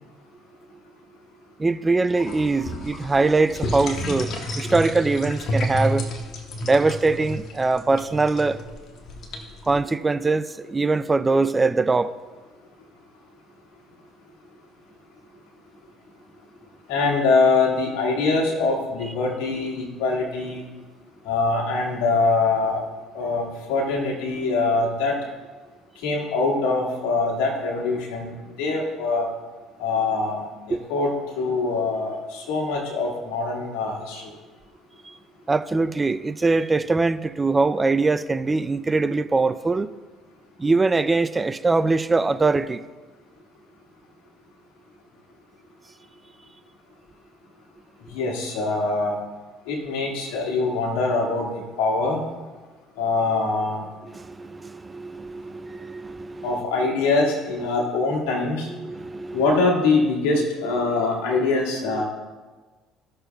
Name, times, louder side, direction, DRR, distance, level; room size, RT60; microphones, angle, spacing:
voice 1, 1.6-4.3 4.6-6.0 6.6-8.6 9.7-12.2 30.7-30.8 35.1-35.2 35.5-39.9 40.6-42.8 54.1-56.6 58.8-59.4 62.0-62.1, right 3 dB, 20° right, 13 dB, 0.3 m, -22 dB
sound 1, 2.2-9.7, left 1 dB, 60° left, 1.3 m, -31 dB
voice 2, 16.9-20.6 21.2-22.8 23.1-25.2 26.0-29.3 29.8-34.3 48.1-49.2 49.7-52.2 53.0-53.9 56.4-58.7 59.3-62.0, left 3 dB, 90° left, -1 dB, 1.8 m, -23 dB
15.5 x 6.6 x 2.3 m, 1.3 s
supercardioid pair, 90°, 0 cm